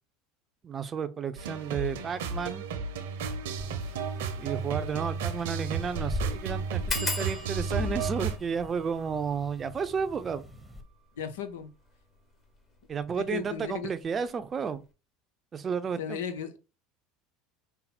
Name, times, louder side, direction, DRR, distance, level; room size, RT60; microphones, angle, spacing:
voice 1, 0.6-2.7 4.4-10.4 12.9-14.8 15.5-16.2, right 6 dB, 30° right, 0.6 m, -32 dB
sound 1, 1.4-8.4, right 6 dB, 80° right, 0.8 m, -33 dB
sound 2, 3.6-10.8, left 2 dB, ahead, 1.0 m, -40 dB
sound 3, 3.8-3.9 4.3-4.4 4.7-4.8 5.3-5.6 5.8-5.9 6.9-12.2 12.8-13.4 13.7-14.0 14.3-14.4, left 2 dB, 30° left, 1.5 m, -40 dB
voice 2, 11.2-11.7 13.1-13.9 16.0-16.6, left 7 dB, 80° left, 0.7 m, -35 dB
5.5 x 2.0 x 4.2 m
hypercardioid pair, 90°, 0 cm